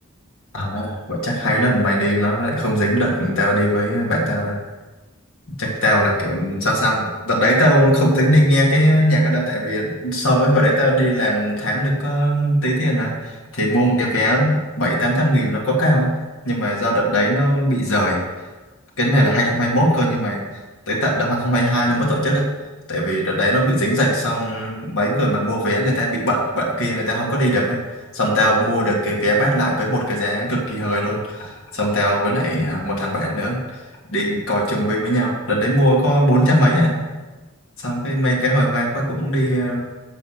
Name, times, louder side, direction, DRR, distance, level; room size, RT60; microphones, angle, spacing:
voice 1, 0.5-4.6 5.6-16.1 16.4-18.2 19.0-20.4 20.9-22.4 22.9-27.8 28.1-33.8 34.1-36.9 37.8-39.8, equal, 65° left, -3 dB, 1.9 m, -19 dB
6.8 x 6.4 x 5.8 m, 1.2 s
head